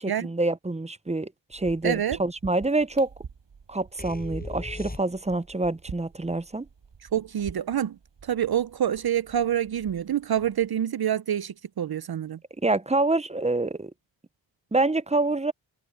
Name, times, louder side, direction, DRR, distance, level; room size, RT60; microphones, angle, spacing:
voice 1, 0.0-3.1 3.7-6.7 12.6-13.9 14.7-15.5, right 2 dB, 15° right, 0.7 m, -26 dB
sound 1, 1.5-10.7, right 6 dB, 70° right, 6.9 m, -48 dB
voice 2, 1.8-2.2 7.1-12.4, right 10 dB, 55° right, 0.6 m, -27 dB
sound 2, 4.0-5.5, left 2 dB, 20° left, 7.1 m, -37 dB
cardioid pair, 60°, 45 cm